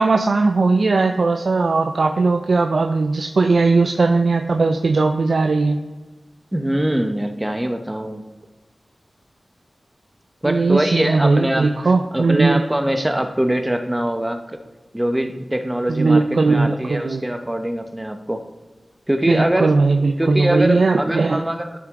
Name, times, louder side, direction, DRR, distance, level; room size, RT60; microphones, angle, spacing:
voice 1, 0.0-5.8 10.4-12.6 16.0-17.2 19.3-21.4, right 3 dB, 75° right, 6 dB, 0.4 m, -18 dB
voice 2, 6.5-8.2 10.4-14.4 14.9-18.4 19.1-19.8 20.2-21.8, right 1 dB, 15° right, 6 dB, 0.9 m, -23 dB
12.0 x 4.6 x 3.7 m, 1.2 s
cardioid pair, 45°, 0 cm